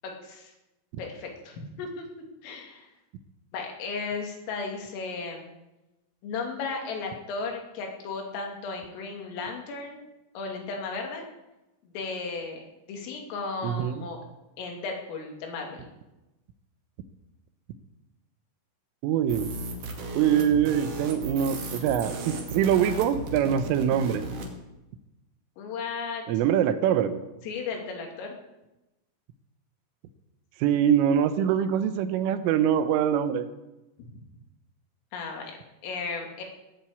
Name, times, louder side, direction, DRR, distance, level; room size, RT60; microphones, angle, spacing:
voice 1, 0.0-0.5 1.0-2.1 2.4-2.9 3.5-5.5 6.2-10.1 10.4-11.3 11.8-14.2 14.6-15.9 25.6-26.2 27.4-28.4 34.0-34.1 35.1-35.6 35.8-36.4, left 4 dB, 85° left, 1 dB, 5.3 m, -35 dB
voice 2, 13.6-14.1 19.0-19.6 20.2-24.2 26.3-27.2 30.6-33.5, right 9 dB, 80° right, 11 dB, 3.5 m, -24 dB
sound 1, 19.3-24.5, right 2 dB, 50° right, 3.1 m, -36 dB
19.5 x 7.6 x 8.4 m, 0.98 s
omnidirectional pair, 5.7 m